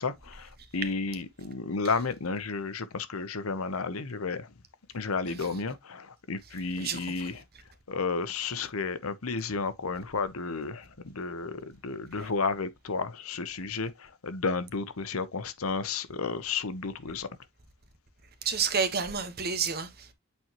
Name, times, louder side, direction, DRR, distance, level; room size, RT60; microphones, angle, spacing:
voice 1, 0.0-4.5 4.9-7.4 7.9-17.3, left 4 dB, 80° left, 0.9 m, -32 dB
voice 2, 6.8-7.3 18.4-20.1, right 6 dB, 50° right, 1.4 m, -30 dB
8.5 x 4.4 x 3.0 m
head